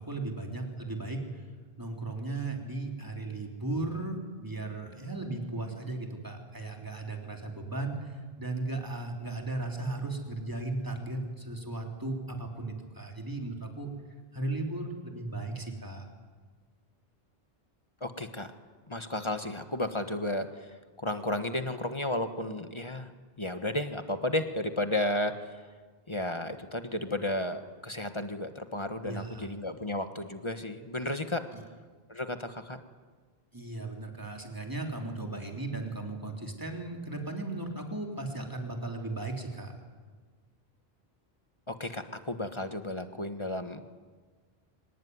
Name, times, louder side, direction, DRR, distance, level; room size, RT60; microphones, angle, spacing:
voice 1, 0.0-1.4 1.8-13.9 14.3-16.1 29.0-29.5 31.5-31.6 33.5-39.8, right 2 dB, 20° right, 2 dB, 3.5 m, -36 dB
voice 2, 18.0-18.5 18.9-20.7 21.0-23.1 23.4-25.6 26.1-31.5 32.1-32.8 41.7-43.8, left 1 dB, 30° left, 8 dB, 1.4 m, -33 dB
24.5 x 19.5 x 9.6 m, 1.5 s
omnidirectional pair, 1.0 m